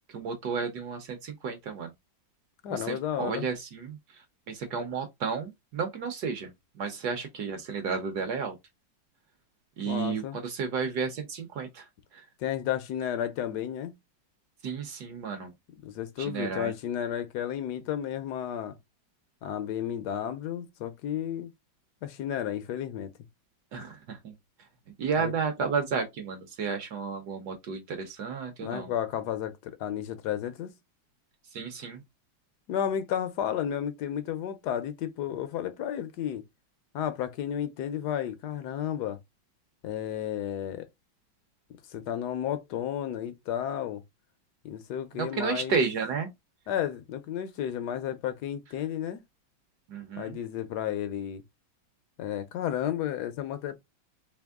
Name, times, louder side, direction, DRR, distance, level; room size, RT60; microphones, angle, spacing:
voice 1, 0.1-1.9 2.7-8.6 9.8-12.3 14.6-15.5 16.2-16.7 23.7-24.3 25.0-28.9 31.5-32.0 45.1-46.3 49.9-50.4, right 5 dB, 65° right, 1.1 m, -32 dB
voice 2, 2.6-3.5 9.8-10.4 12.4-14.0 15.8-18.8 19.4-21.5 22.0-23.1 25.2-25.3 28.6-30.7 32.7-36.4 36.9-39.2 39.8-40.9 41.9-44.0 44.6-45.8 46.7-49.2 50.2-51.4 52.2-53.7, left 10 dB, 70° left, 1.1 m, -32 dB
3.5 x 3.0 x 3.5 m
omnidirectional pair, 2.2 m